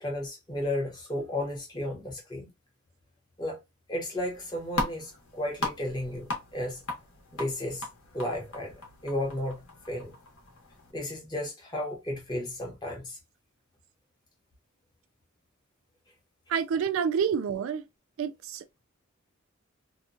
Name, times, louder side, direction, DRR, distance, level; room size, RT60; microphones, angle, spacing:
voice 1, 0.0-2.5 3.4-3.6 3.9-6.8 7.3-7.9 8.1-8.7 9.0-10.1 10.9-13.2, left 1 dB, 20° left, 0.9 m, -33 dB
sound 1, 4.2-10.9, left 1 dB, 70° left, 1.1 m, -38 dB
voice 2, 16.5-17.9 18.2-18.8, right 7 dB, 65° right, 0.3 m, -28 dB
2.9 x 2.2 x 2.5 m
head